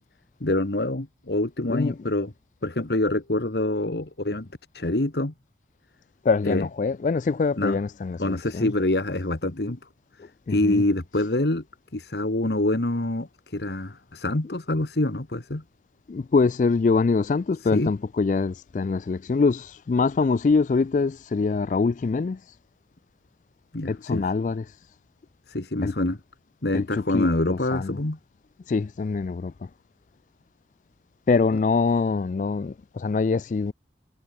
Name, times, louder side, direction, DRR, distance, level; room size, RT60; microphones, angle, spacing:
voice 1, 0.4-2.3 2.6-4.5 4.7-5.3 6.5-6.7 7.6-7.8 8.2-9.8 10.5-11.6 11.9-15.6 17.7-17.9 23.7-24.3 25.5-26.2 26.6-28.2, left 1 dB, 65° left, 1.6 m, -26 dB
voice 2, 6.2-8.7 10.2-10.8 16.1-22.6 23.9-24.8 25.8-25.9 26.7-28.0 28.7-29.7 31.3-33.7, left 4 dB, 45° left, 0.3 m, -24 dB
head